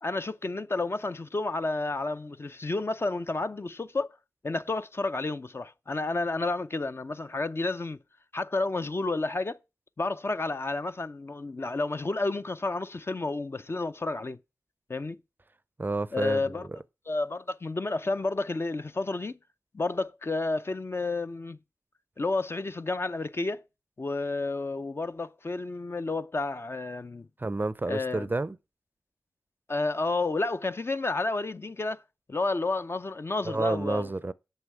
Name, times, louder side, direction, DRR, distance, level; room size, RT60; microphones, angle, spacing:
voice 1, 0.0-4.2 4.4-8.0 8.3-9.6 10.0-14.4 14.9-15.2 16.1-16.7 17.1-19.4 19.7-21.6 22.2-23.6 24.0-27.3 27.9-28.3 29.7-32.0 32.3-34.1, left 3 dB, 35° left, 0.5 m, -31 dB
voice 2, 15.8-16.4 27.4-28.6 33.5-34.3, right 2 dB, 30° right, 0.5 m, -29 dB
8.1 x 5.5 x 7.5 m
cardioid pair, 55°, 7 cm